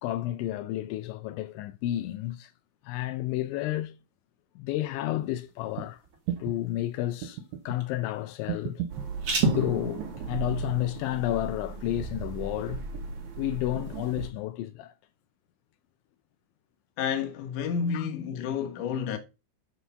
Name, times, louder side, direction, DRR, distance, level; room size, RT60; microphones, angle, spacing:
voice 1, 0.0-2.5 2.8-4.0 4.6-6.0 6.4-8.8 9.4-12.8 13.4-14.9 17.9-18.1, left 15 dB, 85° left, 2.9 m, -31 dB
sound 1, 5.2-12.7, right 3 dB, 40° right, 2.5 m, -42 dB
sound 2, 5.7-5.9 6.3-6.6 7.2-7.8 8.5-9.1 10.0-10.6 11.0-11.6 12.6-13.3 14.2-14.3, right 10 dB, 75° right, 3.1 m, -36 dB
sound 3, 8.9-14.3, right 4 dB, 60° right, 2.1 m, -33 dB
voice 2, 17.0-19.2, left 7 dB, 60° left, 2.3 m, -30 dB
8.1 x 5.9 x 5.6 m
omnidirectional pair, 5.4 m